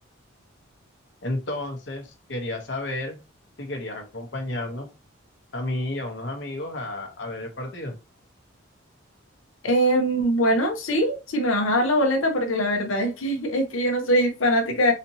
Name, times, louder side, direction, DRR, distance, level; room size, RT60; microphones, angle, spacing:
voice 1, 1.2-3.2 3.6-4.9 5.5-7.9, left 1 dB, 60° left, 3 dB, 0.9 m, -31 dB
voice 2, 9.6-14.9, equal, 80° left, 3 dB, 0.8 m, -22 dB
4.2 x 2.8 x 2.7 m, 0.27 s
head